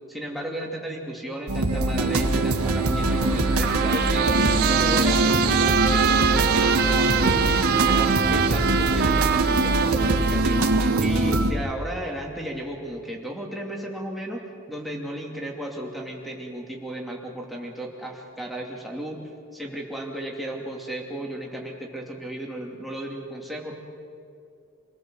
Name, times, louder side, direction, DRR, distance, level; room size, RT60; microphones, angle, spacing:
voice 1, 0.1-10.6 11.0-14.4 14.7-19.2 19.5-23.7, right 1 dB, ahead, -1 dB, 2.7 m, -34 dB
sound 1, 1.5-11.5, right 2 dB, 80° right, 1.8 m, -22 dB
Trumpet, 3.6-11.1, right 7 dB, 45° right, 0.8 m, -25 dB
28.0 x 19.0 x 7.8 m, 2.5 s
head